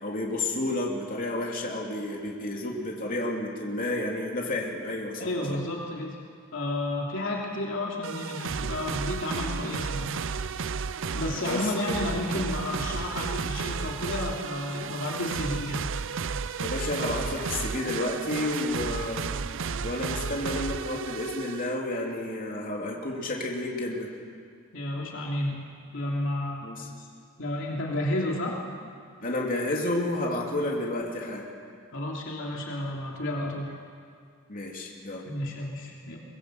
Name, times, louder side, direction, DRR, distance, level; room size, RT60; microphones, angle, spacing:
voice 1, 0.0-5.3 11.4-11.7 16.6-19.2 19.8-24.1 26.6-26.9 29.2-31.5 34.5-35.3, left 1 dB, 40° left, -1 dB, 3.4 m, -31 dB
voice 2, 5.2-6.1 6.5-10.2 11.1-15.9 24.7-25.7 25.9-26.6 27.0-27.1 27.4-28.6 31.9-33.7 35.3-36.2, left 1 dB, 60° left, -2 dB, 3.1 m, -31 dB
sound 1, 8.0-21.8, right 5 dB, 60° right, 0.6 m, -33 dB
23.5 x 20.5 x 8.1 m, 2.2 s
head